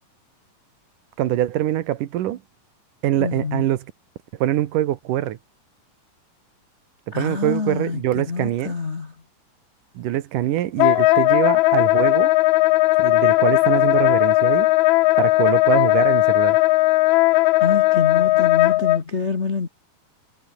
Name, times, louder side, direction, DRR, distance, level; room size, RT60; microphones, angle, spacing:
voice 1, 1.2-2.4 3.0-3.9 4.4-5.4 7.1-8.7 10.0-12.3 13.0-14.7 15.2-16.6, right 13 dB, 75° right, 2.7 m, -23 dB
voice 2, 3.2-3.7 7.1-9.1 17.6-19.7, left 4 dB, 45° left, 0.8 m, -26 dB
Wind instrument woodwind instrument, 10.8-19.0, left 19 dB, 90° left, 1.6 m, -17 dB
omnidirectional pair, 3.9 m